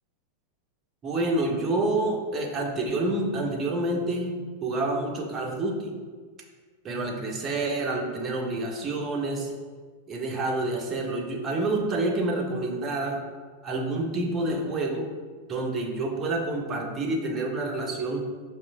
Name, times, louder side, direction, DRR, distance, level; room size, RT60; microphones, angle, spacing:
voice 1, 1.0-4.3 4.6-5.9 6.8-9.5 10.1-13.2 13.6-15.1 15.5-18.3, right 2 dB, 25° right, 1 dB, 0.6 m, -28 dB
4.9 x 2.9 x 2.2 m, 1.5 s
figure-of-eight pair, 90°, 0 cm